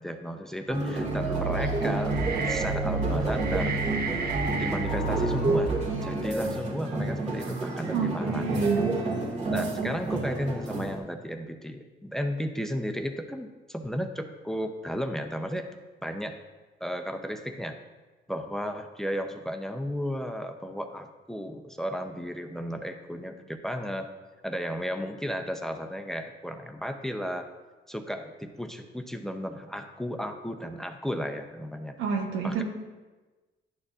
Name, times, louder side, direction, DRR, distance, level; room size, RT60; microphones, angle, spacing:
voice 1, 0.0-3.8 4.6-8.5 9.5-15.7 16.0-16.4 16.8-17.8 18.3-24.1 24.4-27.5 27.9-32.0 32.4-32.6, equal, ahead, 6 dB, 0.6 m, -34 dB
sound 1, 0.7-11.0, right 2 dB, 35° right, 1.9 m, -29 dB
sound 2, 0.9-6.3, right 4 dB, 50° right, 0.7 m, -32 dB
voice 2, 7.9-8.9 32.0-32.6, right 5 dB, 90° right, 3 dB, 1.1 m, -29 dB
11.0 x 6.3 x 2.4 m, 1.2 s
cardioid pair, 90°, 20 cm